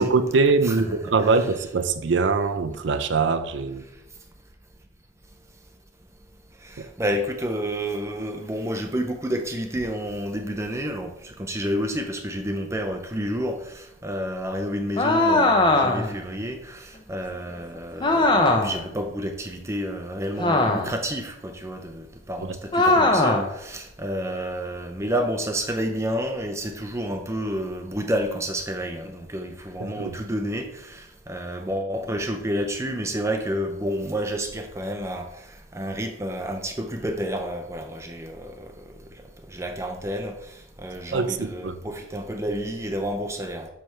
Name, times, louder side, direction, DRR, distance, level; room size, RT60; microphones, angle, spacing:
voice 1, 0.0-3.8 6.8-6.9 22.9-23.0 29.8-30.1 41.1-41.8, right 4 dB, 75° right, 0.5 m, -23 dB
voice 2, 6.6-39.1 39.5-43.7, equal, 15° right, 0.6 m, -30 dB
sound 1, 15.0-16.2 18.0-18.8 20.4-21.1 22.7-23.5, left 2 dB, 25° left, 0.7 m, -20 dB
7.6 x 3.4 x 5.6 m
head